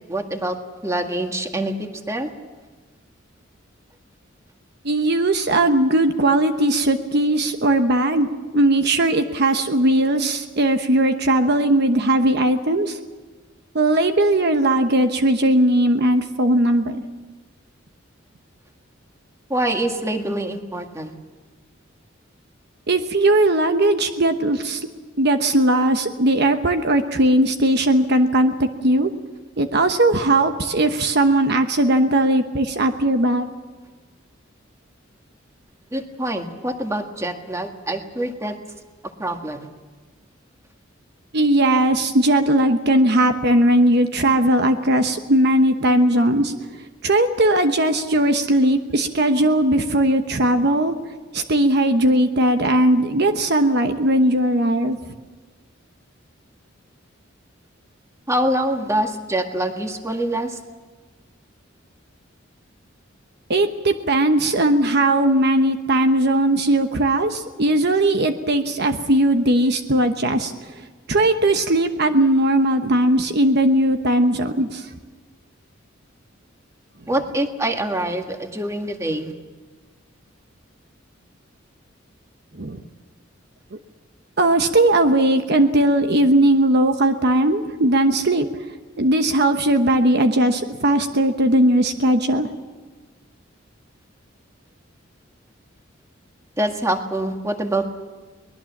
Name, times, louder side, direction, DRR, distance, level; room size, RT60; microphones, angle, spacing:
voice 1, 0.1-0.6 0.8-1.7 2.1-2.3 19.5-21.1 35.9-38.5 39.2-39.6 58.3-60.6 77.1-79.3 96.6-97.9, right 1 dB, 15° right, 4 dB, 1.8 m, -25 dB
voice 2, 4.8-13.0 13.7-17.0 22.9-24.9 25.2-28.6 28.8-29.1 29.6-33.5 41.3-46.5 47.0-50.9 51.3-55.0 63.5-70.8 71.1-74.9 82.6-82.8 84.4-88.5 89.0-92.5, right 1 dB, 55° right, 7 dB, 1.1 m, -18 dB
23.0 x 20.0 x 7.3 m, 1.4 s
head